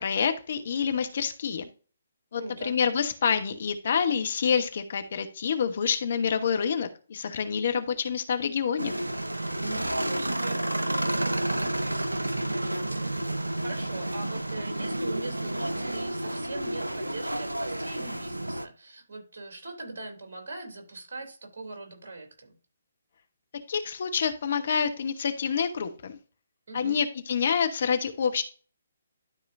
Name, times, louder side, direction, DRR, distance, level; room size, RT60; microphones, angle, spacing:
voice 1, 0.0-1.6 2.3-8.9 23.7-26.2 26.7-28.4, left 6 dB, 50° left, 8 dB, 1.2 m, -27 dB
voice 2, 2.4-2.8 9.6-22.5 26.7-27.0, right 2 dB, 55° right, 3 dB, 3.3 m, -41 dB
sound 1, 8.8-18.7, right 1 dB, 85° right, 0.8 m, -30 dB
12.5 x 4.8 x 2.7 m, 0.37 s
figure-of-eight pair, 135°, 0 cm